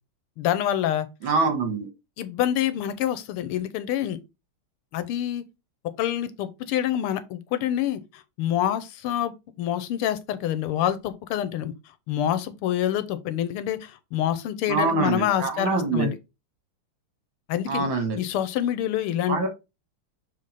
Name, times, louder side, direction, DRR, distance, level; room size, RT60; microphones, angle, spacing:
voice 1, 0.4-1.1 2.2-4.2 4.9-5.5 6.0-9.3 9.6-11.7 12.1-16.2 17.5-17.9 18.2-19.5, left 11 dB, 85° left, 1.6 m, -26 dB
voice 2, 1.2-1.9 14.7-16.1 17.7-18.2 19.3-19.5, right 4 dB, 65° right, 2.1 m, -24 dB
6.7 x 3.5 x 4.0 m
omnidirectional pair, 2.4 m